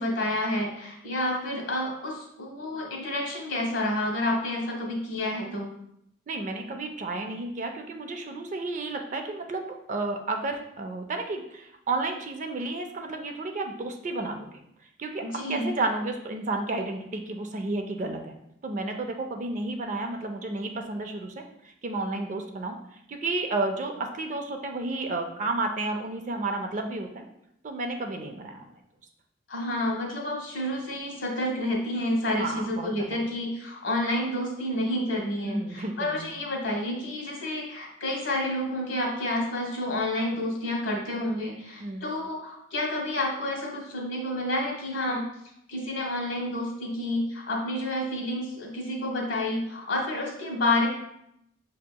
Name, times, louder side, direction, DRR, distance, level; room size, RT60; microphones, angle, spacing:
voice 1, 0.0-5.7 15.2-15.7 29.5-45.2 45.7-50.9, left 1 dB, 85° left, -1 dB, 1.1 m, -29 dB
voice 2, 6.3-14.6 15.0-15.2 15.5-18.3 18.6-22.8 23.1-27.2 27.6-28.7 32.4-33.2 35.4-36.3 41.8-42.1, right 2 dB, 40° right, 4 dB, 0.4 m, -32 dB
5.8 x 2.8 x 2.2 m, 0.77 s
head